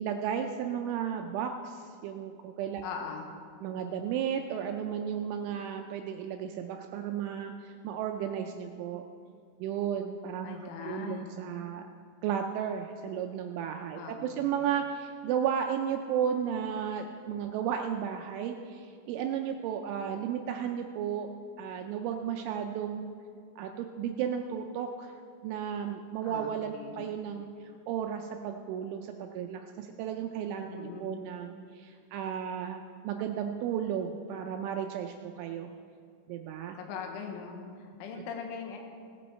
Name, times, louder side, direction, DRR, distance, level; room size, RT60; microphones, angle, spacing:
voice 1, 0.0-2.8 3.6-9.0 9.6-11.8 12.2-21.3 21.6-23.1 23.6-35.7 36.3-36.8, right 8 dB, 85° right, 4 dB, 2.7 m, -34 dB
voice 2, 2.8-3.3 10.4-11.4 13.9-14.5 26.2-27.1 30.7-31.3 36.8-38.8, left 6 dB, 75° left, 3 dB, 3.5 m, -40 dB
19.0 x 8.5 x 4.2 m, 2.3 s
omnidirectional pair, 5.9 m